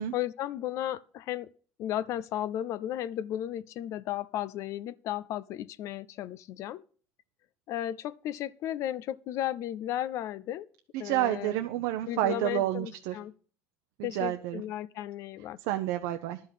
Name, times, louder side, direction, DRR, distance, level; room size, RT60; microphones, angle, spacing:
voice 1, 0.1-1.5 1.8-6.8 7.7-10.7 11.0-11.6 12.1-13.3 14.0-15.6, left 12 dB, 55° left, 0.5 m, -34 dB
voice 2, 10.9-13.2 14.0-14.6 15.6-16.4, right 14 dB, 80° right, 0.8 m, -30 dB
11.5 x 5.5 x 8.2 m
cardioid pair, 135°, 6 cm